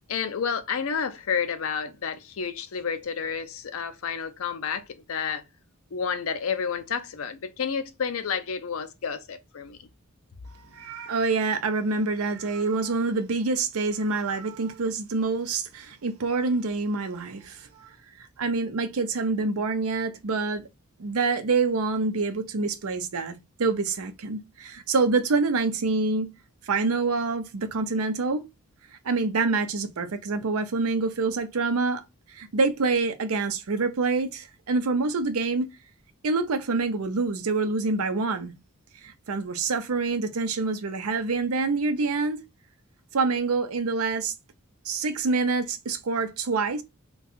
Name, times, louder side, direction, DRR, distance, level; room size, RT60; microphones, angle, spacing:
voice 1, 0.1-5.4 5.9-9.8, left 6 dB, 70° left, 0.5 m, -30 dB
voice 2, 10.7-20.7 21.0-26.3 26.6-28.4 29.0-32.0 32.3-35.7 36.2-38.5 39.0-42.4 43.1-44.3 44.8-46.8, right 3 dB, 85° right, 0.6 m, -26 dB
2.7 x 2.3 x 4.1 m
head